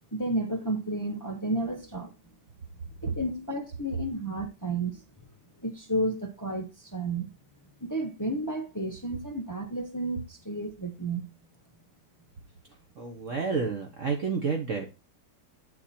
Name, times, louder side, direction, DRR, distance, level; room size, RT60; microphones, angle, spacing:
voice 1, 0.1-2.1 3.0-5.0 5.6-7.3 7.8-11.2, right 1 dB, 15° left, 0.8 m, -32 dB
voice 2, 13.0-14.9, right 5 dB, 50° right, 1.3 m, -30 dB
8.7 x 4.4 x 4.3 m
omnidirectional pair, 1.8 m